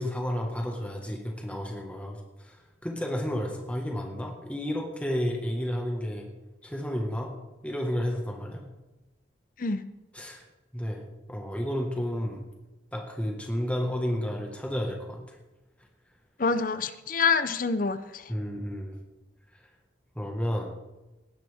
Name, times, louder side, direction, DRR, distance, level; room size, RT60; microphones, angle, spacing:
voice 1, 0.0-6.3 6.6-7.3 7.6-8.6 10.1-10.4 10.7-11.0 11.3-12.4 12.9-15.4 18.3-19.0 20.1-20.7, equal, 5° left, 0 dB, 1.6 m, -31 dB
voice 2, 16.4-18.3, left 4 dB, 45° left, 13 dB, 0.6 m, -26 dB
19.0 x 10.5 x 3.6 m, 1.0 s
head